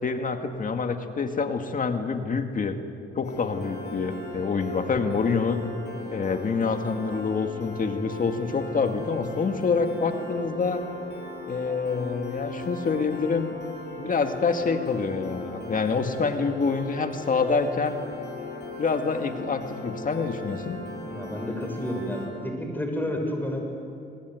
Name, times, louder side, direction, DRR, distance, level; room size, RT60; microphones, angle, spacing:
voice 1, 0.0-2.8 3.2-5.6 6.1-10.8 11.5-13.5 14.0-18.0 18.8-20.8, left 4 dB, 45° left, 6 dB, 2.1 m, -26 dB
Piano, 3.2-22.3, left 2 dB, 60° left, 7.0 m, -38 dB
voice 2, 21.1-23.6, left 1 dB, 10° left, 2 dB, 6.7 m, -30 dB
27.5 x 20.5 x 9.4 m, 2.5 s
cardioid pair, 90°, 20 cm